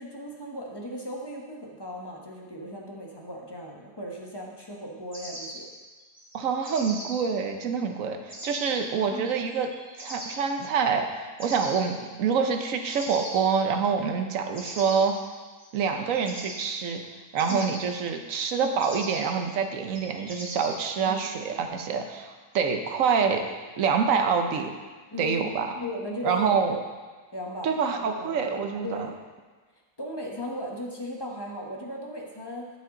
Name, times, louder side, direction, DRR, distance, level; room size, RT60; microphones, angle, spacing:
voice 1, 0.0-5.7 9.1-9.3 17.5-17.8 21.0-21.8 25.1-26.8 27.3-28.5 28.8-29.1 30.0-32.7, equal, 15° left, -2 dB, 1.1 m, -37 dB
sound 1, 5.1-7.2 8.3-8.7 9.5-10.3 11.4-12.0 12.9-13.4 14.5-17.0 17.4-17.8 18.8-19.4 19.9-20.9, equal, 20° right, 3.2 m, -40 dB
voice 2, 6.3-9.7 10.0-15.1 15.7-17.0 17.3-23.4 23.8-24.7 25.2-25.7 26.2-26.8 27.6-29.1, right 6 dB, 55° right, 5 dB, 1.1 m, -26 dB
13.5 x 5.9 x 3.8 m, 1.4 s
omnidirectional pair, 1.8 m